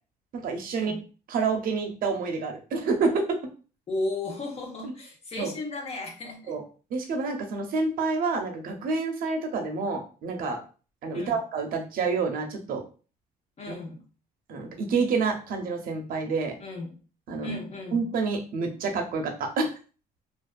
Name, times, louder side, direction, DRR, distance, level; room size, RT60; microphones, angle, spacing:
voice 1, 0.3-0.9 1.3-3.4 5.4-5.5 6.5-6.6 6.9-10.6 11.0-12.8 14.5-16.6 17.3-17.6 17.9-19.7, right 4 dB, 60° right, 3 dB, 0.6 m, -28 dB
voice 2, 3.9-6.5 11.1-11.4 13.6-14.0 16.6-16.9 17.4-18.1, left 2 dB, 40° left, 1 dB, 0.8 m, -35 dB
2.4 x 2.3 x 2.2 m, 0.36 s
cardioid pair, 110°, 17 cm